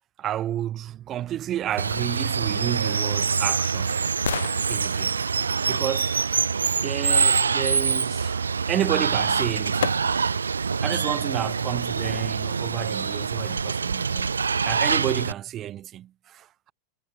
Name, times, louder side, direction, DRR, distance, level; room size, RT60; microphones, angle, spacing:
voice 1, 0.2-4.2 4.7-5.2 5.7-6.3 6.8-10.0 10.6-14.4 14.7-16.7, right 12 dB, 30° right, 0.6 m, -31 dB
Water, 1.8-15.3, right 5 dB, 75° right, 0.6 m, -25 dB
sound 1, 9.8-10.5 11.0-11.1, left 10 dB, 65° left, 1.4 m, -36 dB
figure-of-eight pair, 90°, 0 cm